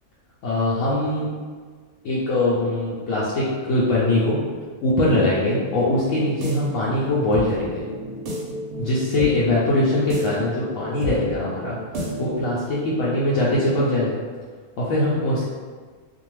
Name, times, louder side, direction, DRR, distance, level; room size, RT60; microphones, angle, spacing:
voice 1, 0.4-1.3 2.0-4.4 4.8-7.8 8.8-14.2 14.8-15.4, left 1 dB, 70° left, -8 dB, 0.9 m, -22 dB
sound 1, 6.2-12.6, equal, 65° right, 0.8 m, -32 dB
2.6 x 2.2 x 3.0 m, 1.5 s
omnidirectional pair, 1.4 m